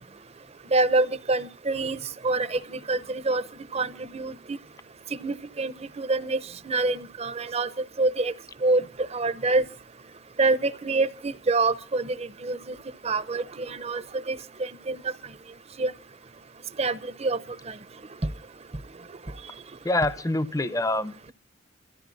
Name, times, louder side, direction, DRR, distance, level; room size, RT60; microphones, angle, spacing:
voice 1, 0.7-3.4 3.7-4.6 5.2-6.4 6.7-7.7 8.0-8.3 8.6-8.8 9.1-9.6 10.4-12.8 13.0-14.0 14.3-15.0 15.8-15.9 16.8-17.4, right 3 dB, 35° right, 0.7 m, -26 dB
voice 2, 19.8-21.3, left 2 dB, 15° left, 0.6 m, -26 dB
28.5 x 13.5 x 2.6 m
head